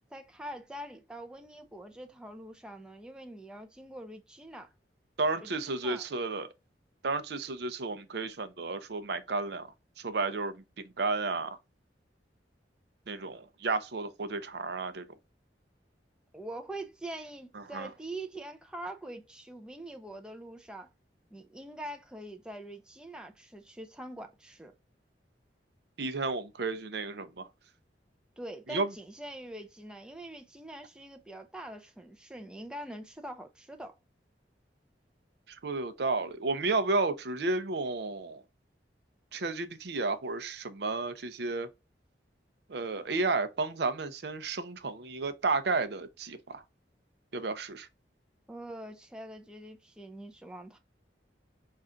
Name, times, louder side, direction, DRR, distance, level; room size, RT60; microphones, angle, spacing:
voice 1, 0.1-4.7 5.4-6.1 16.3-20.9 21.3-24.7 28.4-33.9 48.5-50.8, right 1 dB, 5° right, 0.5 m, -44 dB
voice 2, 5.2-6.5 7.0-9.7 10.0-10.6 11.0-11.6 13.1-15.0 17.5-17.9 26.0-27.5 28.7-28.9 35.5-38.4 39.3-41.7 42.7-46.6 47.3-47.9, right 3 dB, 65° right, 0.6 m, -32 dB
5.5 x 2.4 x 3.7 m
head